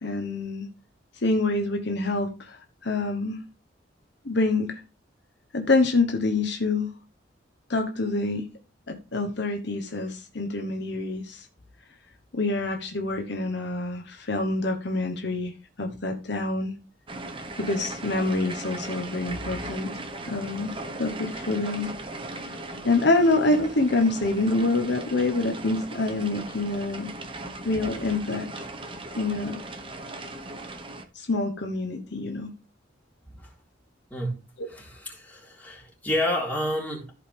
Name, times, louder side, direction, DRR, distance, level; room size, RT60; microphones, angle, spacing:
voice 1, 0.0-0.7 1.2-3.4 4.2-4.8 5.5-6.9 7.7-8.5 8.9-11.5 12.3-15.5 15.8-16.7 17.6-19.9 20.3-21.9 22.8-27.1 27.6-28.5 29.1-29.6 31.1-32.5, left 2 dB, 60° left, 1.1 m, -26 dB
sound 1, 17.1-31.0, right 2 dB, 25° right, 1.1 m, -38 dB
voice 2, 34.1-34.4 34.7-37.1, left 1 dB, 10° left, 3.7 m, -30 dB
14.5 x 5.2 x 3.4 m
head